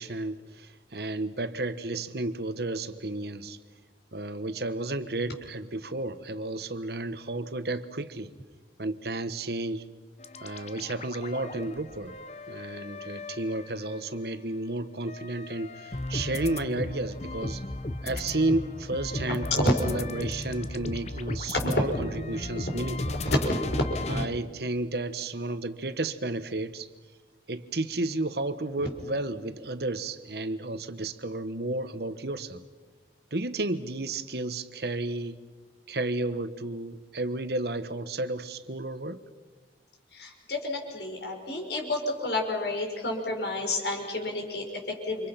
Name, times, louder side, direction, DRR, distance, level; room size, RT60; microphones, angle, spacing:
voice 1, 0.0-3.6 4.1-8.3 8.8-9.8 10.4-12.2 12.5-17.6 18.0-23.0 24.1-26.9 27.5-32.6 33.3-35.4 35.9-39.2, right 2 dB, 65° right, 12 dB, 1.3 m, -32 dB
sound 1, 10.2-14.3 14.7-24.3, left 2 dB, 35° left, 1.1 m, -36 dB
voice 2, 23.3-24.4 40.1-45.3, left 2 dB, 75° left, 2 dB, 5.7 m, -30 dB
29.5 x 26.5 x 5.9 m, 1.3 s
head